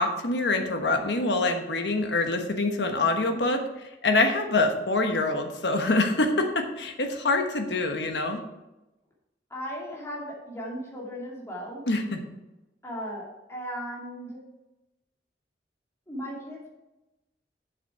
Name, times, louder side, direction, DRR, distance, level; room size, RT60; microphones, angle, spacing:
voice 1, 0.0-3.6 4.0-8.4 11.9-12.2, left 2 dB, 70° left, 5 dB, 1.2 m, -25 dB
voice 2, 9.5-11.8 12.8-14.4 16.1-16.7, equal, 15° left, -4 dB, 2.5 m, -36 dB
8.1 x 7.3 x 4.8 m, 0.99 s
head